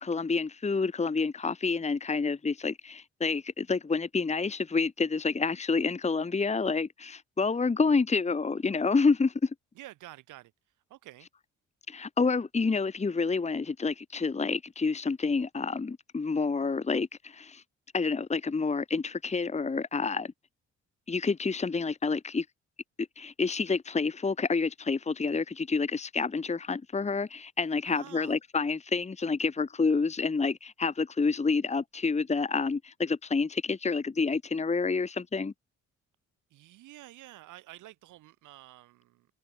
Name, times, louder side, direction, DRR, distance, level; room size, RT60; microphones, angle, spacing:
voice 1, 0.0-9.5 11.9-17.6 17.9-20.3 21.1-22.5 23.0-35.5, left 4 dB, 20° left, 1.3 m, -28 dB
voice 2, 9.8-10.5 10.9-11.3 27.9-28.3 36.5-39.3, right 15 dB, 90° right, 3.8 m, -49 dB
cardioid pair, 90°, 30 cm